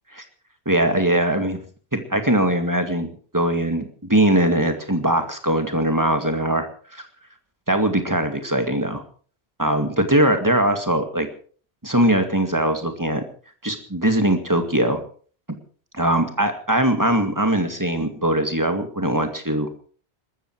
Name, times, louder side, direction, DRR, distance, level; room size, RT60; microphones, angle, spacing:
voice 1, 0.7-1.6 1.9-6.7 6.9-7.0 7.7-9.0 9.6-11.3 11.8-13.2 13.6-15.0 15.5-15.6 15.9-19.7, right 1 dB, 15° right, 7 dB, 2.2 m, -21 dB
21.5 x 14.0 x 4.7 m, 0.43 s
omnidirectional pair, 1.1 m